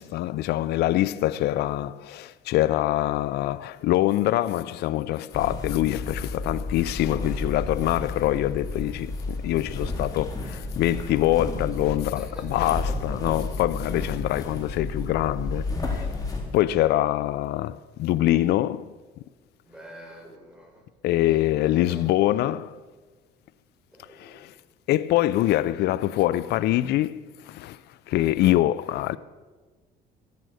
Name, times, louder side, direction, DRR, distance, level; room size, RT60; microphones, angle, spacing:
voice 1, 0.0-16.1 16.5-18.9 21.0-22.8 24.1-24.5 24.9-29.2, left 14 dB, 75° left, 0.4 m, -24 dB
sound 1, 5.3-16.4, left 3 dB, 20° left, 3.8 m, -32 dB
voice 2, 12.2-12.5 12.9-13.4 19.6-20.8 21.1-22.6 23.9-24.5 28.9-29.2, equal, 5° right, 5.4 m, -46 dB
14.5 x 13.5 x 6.5 m
cardioid pair, 110°, 17 cm